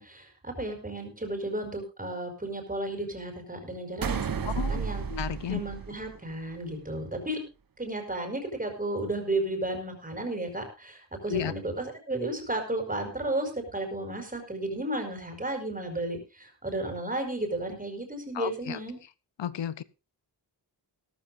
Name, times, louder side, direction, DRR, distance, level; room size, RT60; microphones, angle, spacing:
voice 1, 0.0-5.0 5.5-7.4 7.8-19.0, right 1 dB, 20° right, 5.0 m, -33 dB
sound 1, 4.0-6.6, right 6 dB, 55° right, 1.0 m, -32 dB
voice 2, 5.1-5.6 11.3-11.5 18.4-18.8 19.4-19.8, left 9 dB, 85° left, 0.8 m, -32 dB
17.5 x 14.0 x 2.6 m
wide cardioid pair, 105°, 42 cm